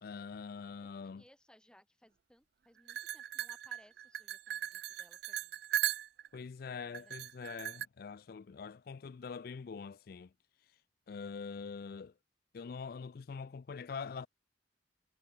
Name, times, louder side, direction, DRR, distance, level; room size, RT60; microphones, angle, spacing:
voice 1, 0.0-1.2 6.3-10.3 10.6-10.8 11.1-12.1 12.5-14.3, left 5 dB, 55° left, 0.4 m, -44 dB
voice 2, 1.0-5.6 6.7-7.6, equal, 5° left, 2.3 m, -65 dB
sound 1, 2.9-6.4 6.9-7.8, right 11 dB, 55° right, 0.3 m, -38 dB
head